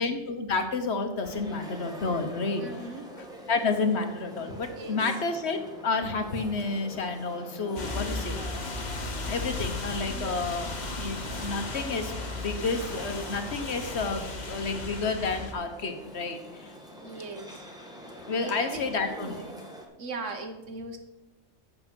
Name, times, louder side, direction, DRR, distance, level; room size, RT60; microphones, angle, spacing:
voice 1, 0.0-2.6 3.5-8.4 9.3-16.7 18.3-19.4, left 4 dB, 60° left, 6 dB, 1.3 m, -30 dB
sound 1, 1.2-19.9, equal, 5° right, 1.6 m, -44 dB
voice 2, 2.6-3.1 4.8-5.0 17.0-17.7 18.4-19.6 20.0-21.0, right 3 dB, 70° right, 6 dB, 1.6 m, -39 dB
sound 2, 7.8-15.5, left 3 dB, 35° left, 1.2 m, -35 dB
8.6 x 7.6 x 6.1 m, 0.97 s
omnidirectional pair, 1.3 m